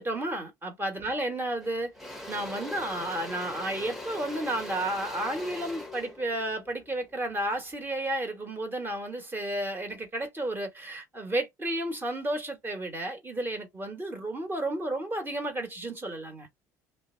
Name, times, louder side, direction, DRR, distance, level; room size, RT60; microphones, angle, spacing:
voice 1, 0.0-1.9 2.3-16.5, right 1 dB, 25° right, 1.4 m, -32 dB
Engine / Drill, 1.0-1.3 1.6-7.7, left 1 dB, ahead, 1.0 m, -41 dB
2.6 x 2.1 x 2.6 m
hypercardioid pair, 65°, 9 cm